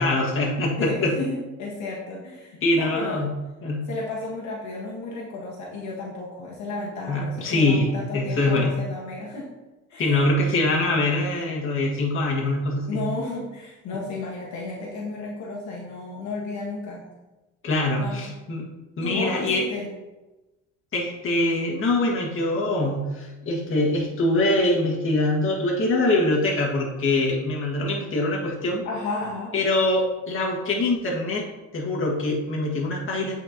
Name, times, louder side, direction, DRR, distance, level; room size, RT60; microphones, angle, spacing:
voice 1, 0.0-1.1 2.6-3.3 3.6-3.9 7.1-7.9 8.1-8.7 10.0-13.0 17.6-18.6 19.0-19.6 20.9-28.8 29.5-31.5 31.7-33.4, left 2 dB, 40° left, -2 dB, 1.7 m, -23 dB
voice 2, 0.8-3.2 3.8-9.5 9.9-10.3 12.9-17.0 18.0-18.3 19.0-19.9 28.8-29.5, left 3 dB, 60° left, -3 dB, 1.4 m, -33 dB
8.4 x 4.5 x 2.9 m, 1.1 s
cardioid pair, 110°, 31 cm